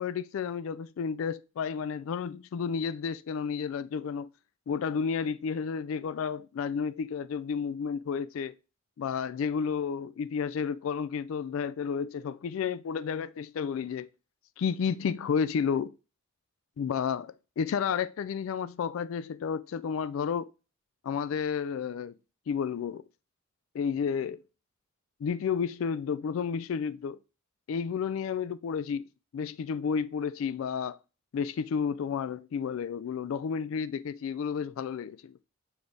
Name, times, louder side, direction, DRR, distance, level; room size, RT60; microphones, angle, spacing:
voice 1, 0.0-4.3 4.7-8.5 9.0-14.1 14.6-15.9 16.8-20.5 21.0-22.1 22.5-23.0 23.7-24.4 25.2-27.2 27.7-29.1 29.3-31.0 31.3-35.4, left 6 dB, 70° left, 0.3 m, -31 dB
6.9 x 3.5 x 3.9 m
head